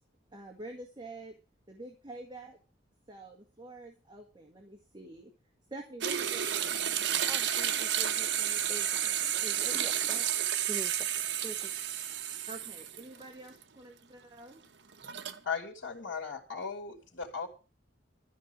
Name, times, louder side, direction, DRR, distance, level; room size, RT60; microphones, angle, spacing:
voice 1, 0.3-1.4 1.7-2.6 3.1-5.3 5.7-6.9 12.5-14.6, right 2 dB, 25° right, 1 dB, 1.8 m, -47 dB
sound 1, 6.0-13.2 13.6-13.7 14.9-15.4, right 10 dB, 65° right, 1.0 m, -31 dB
voice 2, 7.3-11.9, right 1 dB, ahead, 8 dB, 0.9 m, -46 dB
voice 3, 15.4-17.5, left 5 dB, 75° left, 2 dB, 2.7 m, -37 dB
13.0 x 5.6 x 9.3 m, 0.33 s
head